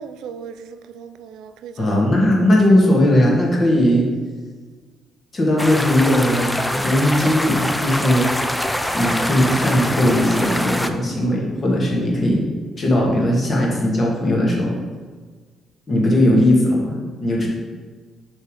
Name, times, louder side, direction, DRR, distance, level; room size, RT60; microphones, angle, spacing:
voice 1, 0.0-1.9, right 6 dB, 90° right, 10 dB, 0.4 m, -37 dB
voice 2, 1.8-4.1 5.3-8.3 8.9-12.5 12.8-14.8 15.9-17.5, left 1 dB, 35° left, -2 dB, 1.8 m, -18 dB
sound 1, 5.6-10.9, left 1 dB, 5° left, 0.5 m, -24 dB
6.6 x 3.6 x 4.9 m, 1.5 s
cardioid pair, 90°, 0 cm